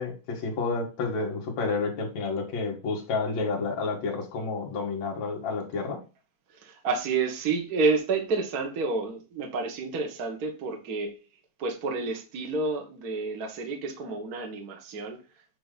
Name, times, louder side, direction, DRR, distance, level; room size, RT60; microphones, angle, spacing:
voice 1, 0.0-6.0, left 4 dB, 55° left, 0 dB, 3.1 m, -30 dB
voice 2, 6.6-11.1 11.6-15.2, right 4 dB, 40° right, 2 dB, 1.4 m, -29 dB
8.8 x 3.4 x 5.2 m, 0.31 s
omnidirectional pair, 3.8 m